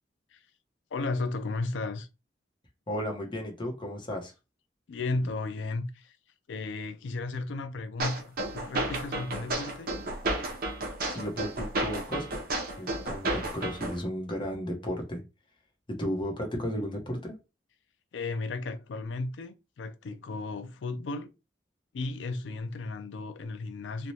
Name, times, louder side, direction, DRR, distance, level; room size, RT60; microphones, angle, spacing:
voice 1, 0.9-2.1 4.9-6.2 6.5-9.9 18.1-21.3 21.9-24.1, left 3 dB, 90° left, 0.4 m, -34 dB
voice 2, 2.9-4.3 5.1-5.2 11.1-12.4 12.8-15.2 15.9-17.3, equal, 25° left, 1.0 m, -34 dB
sound 1, 8.0-14.0, right 2 dB, 55° right, 0.8 m, -32 dB
3.2 x 2.3 x 2.7 m
head